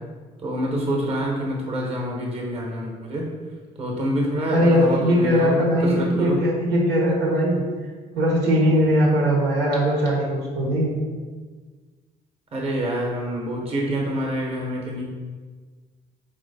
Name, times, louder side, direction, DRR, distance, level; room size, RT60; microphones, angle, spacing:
voice 1, 0.4-3.3 3.8-6.4 12.5-15.0, equal, 35° right, -1 dB, 1.0 m, -27 dB
voice 2, 4.5-7.6 8.2-10.9, equal, 85° right, -2 dB, 1.2 m, -20 dB
3.9 x 2.9 x 4.1 m, 1.4 s
cardioid pair, 110°, 17 cm